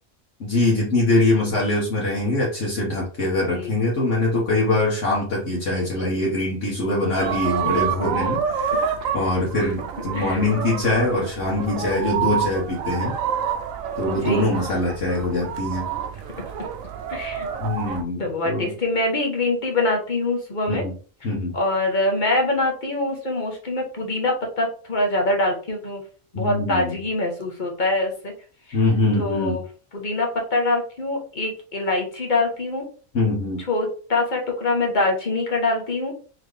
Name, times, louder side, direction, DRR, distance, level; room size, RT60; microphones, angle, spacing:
voice 1, 0.4-13.1 14.0-15.9 17.6-18.7 20.7-20.9 21.2-21.5 26.3-27.0 28.7-29.6 33.1-33.6, left 2 dB, 60° left, -4 dB, 1.4 m, -23 dB
sound 1, 7.2-18.0, right 7 dB, 75° right, 1.0 m, -28 dB
voice 2, 14.1-14.5 17.1-17.5 18.2-20.8 21.5-26.0 26.3-28.3 28.7-28.8 29.2-29.6 29.9-32.9 33.6-36.1, left 2 dB, 35° left, 1 dB, 1.1 m, -24 dB
3.9 x 3.1 x 3.2 m, 0.41 s
omnidirectional pair, 1.4 m